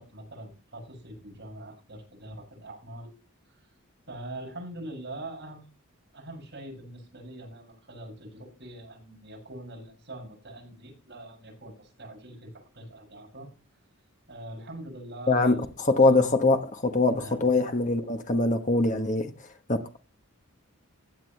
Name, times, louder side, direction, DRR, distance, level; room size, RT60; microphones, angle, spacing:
voice 1, 0.0-3.1 3.6-3.7 4.1-5.7 6.1-13.5 14.3-16.2 17.1-17.4, right 1 dB, 55° right, 7.3 m, -43 dB
voice 2, 15.3-19.3 19.7-20.0, left 2 dB, 35° left, 1.2 m, -23 dB
15.5 x 9.2 x 3.3 m
head